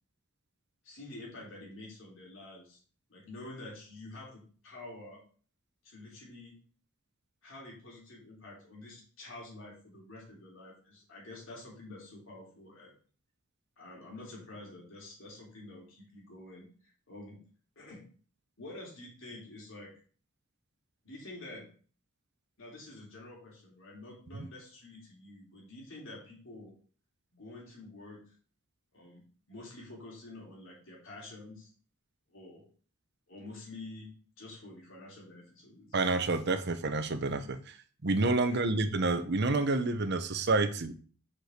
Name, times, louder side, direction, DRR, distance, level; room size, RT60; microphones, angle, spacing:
voice 1, 0.8-2.8 3.1-5.2 5.8-6.6 7.4-12.9 13.8-17.4 17.8-18.1 18.6-19.9 21.0-21.7 22.6-26.7 27.3-28.2 28.9-29.2 29.5-31.7 32.3-32.6 33.3-34.1 34.4-36.0 38.5-38.8, left 2 dB, 65° left, -4 dB, 3.6 m, -48 dB
voice 2, 35.9-37.8 38.0-40.9, right 3 dB, 55° right, 9 dB, 0.9 m, -29 dB
6.1 x 5.4 x 6.6 m, 0.42 s
head